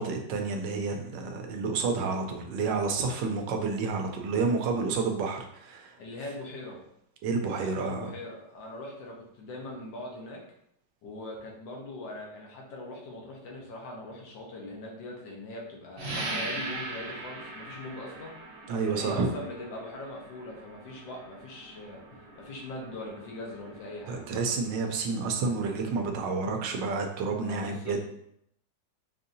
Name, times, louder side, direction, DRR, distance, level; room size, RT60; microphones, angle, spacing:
voice 1, 0.0-6.0 7.2-8.1 18.7-19.3 24.1-28.0, right 4 dB, 80° right, 3 dB, 1.3 m, -30 dB
voice 2, 6.0-6.8 7.6-10.4 11.0-18.4 18.8-22.0 22.3-24.2 27.4-28.0, left 1 dB, 80° left, -1 dB, 1.6 m, -41 dB
sound 1, 16.0-26.3, right 2 dB, 50° right, 1.1 m, -41 dB
5.3 x 2.6 x 2.6 m, 0.74 s
omnidirectional pair, 2.0 m